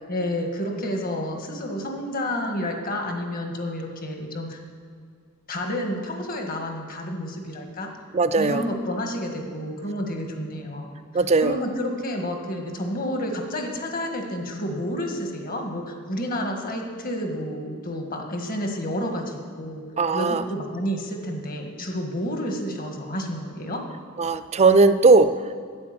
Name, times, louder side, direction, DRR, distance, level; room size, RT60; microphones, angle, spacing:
voice 1, 0.1-4.6 5.5-7.9 8.4-10.9 11.4-19.8 20.1-23.9, equal, 45° left, 3 dB, 1.7 m, -30 dB
voice 2, 8.1-8.6 11.1-11.6 20.0-20.4 24.2-25.3, right 3 dB, 30° right, 12 dB, 0.5 m, -18 dB
9.6 x 9.3 x 7.7 m, 2.1 s
head